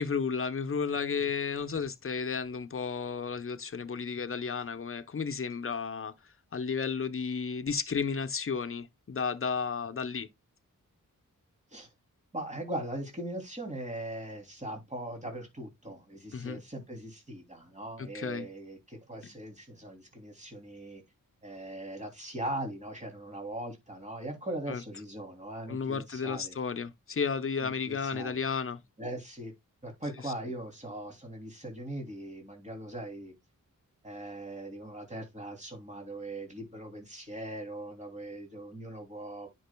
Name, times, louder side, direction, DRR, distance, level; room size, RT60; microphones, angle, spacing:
voice 1, 0.0-6.1 6.5-10.3 16.3-16.6 18.0-18.5 24.7-24.8 25.7-28.8 30.2-30.3, left 5 dB, 40° left, 0.9 m, -33 dB
voice 2, 12.3-21.0 21.4-26.6 27.6-28.4 29.0-29.5 29.8-33.3 34.0-39.5, right 1 dB, 20° right, 3.0 m, -40 dB
10.0 x 5.4 x 2.3 m
wide cardioid pair, 85°, 33 cm